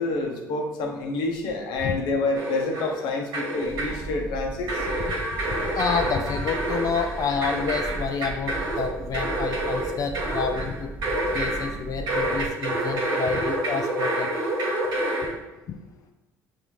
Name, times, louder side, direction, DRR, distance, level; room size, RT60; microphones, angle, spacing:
voice 1, 0.0-4.9, left 3 dB, 80° left, 2 dB, 0.8 m, -28 dB
sound 1, 2.3-3.0 3.3-4.0 4.7-11.7 12.1-15.3, right 1 dB, 70° right, 1.2 m, -28 dB
sound 2, 3.6-12.5, right 3 dB, 20° right, 0.6 m, -37 dB
voice 2, 5.7-10.9 11.3-14.3, left 6 dB, 50° left, 5 dB, 0.4 m, -29 dB
5.6 x 2.6 x 3.1 m, 1.0 s
supercardioid pair, 80°, 8 cm